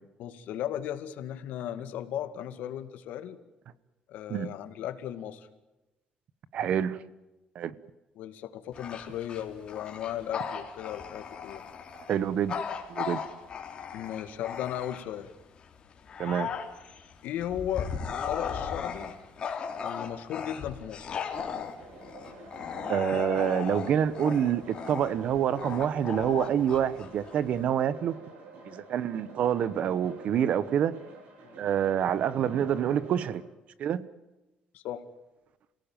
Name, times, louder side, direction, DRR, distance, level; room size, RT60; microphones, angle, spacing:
voice 1, 0.2-3.4 4.1-5.5 8.2-11.6 13.9-15.3 17.2-17.9 18.3-19.1 19.8-21.1 31.4-31.6 34.7-35.1, left 11 dB, 75° left, 2.1 m, -36 dB
voice 2, 6.5-7.0 7.5-7.7 12.1-12.5 12.9-13.2 16.2-16.5 22.9-28.2 28.6-31.0 31.6-33.4 33.8-34.0, right 9 dB, 50° right, 1.1 m, -27 dB
Bark / Growling, 8.7-15.3 15.7-27.6, left 7 dB, 35° left, 3.3 m, -37 dB
sound 1, 21.3-33.3, right 2 dB, 70° right, 7.7 m, -48 dB
28.5 x 17.5 x 9.1 m
cardioid pair, 175°, 3 cm